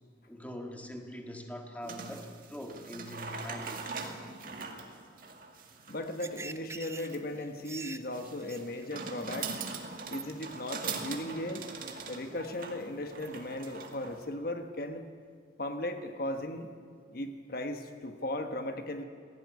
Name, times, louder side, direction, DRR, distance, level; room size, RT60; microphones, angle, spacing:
voice 1, 0.3-3.9, equal, 10° left, 3 dB, 1.7 m, -42 dB
sound 1, 1.8-14.3, right 4 dB, 50° right, 2.1 m, -42 dB
voice 2, 5.9-9.5 10.1-11.6 12.1-15.0 15.6-16.7 17.1-19.0, left 1 dB, 55° left, 6 dB, 1.2 m, -37 dB
sound 2, 6.0-9.6 9.9-10.6 10.9-11.0 11.6-11.8 12.2-12.5 13.2-13.3 13.6-13.9, right 5 dB, 15° right, 0.6 m, -44 dB
17.0 x 16.0 x 9.6 m, 2.1 s
head